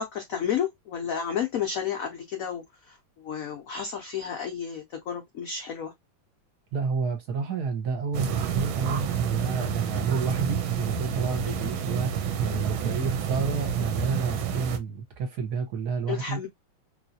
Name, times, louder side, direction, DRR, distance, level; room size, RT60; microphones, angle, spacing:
voice 1, 0.0-5.9 11.5-11.6 16.1-16.5, left 8 dB, 85° left, 0.7 m, -32 dB
voice 2, 6.7-16.4, right 5 dB, 60° right, 1.3 m, -30 dB
sound 1, 8.1-14.8, right 7 dB, 90° right, 1.4 m, -29 dB
3.1 x 3.1 x 2.7 m
omnidirectional pair, 2.2 m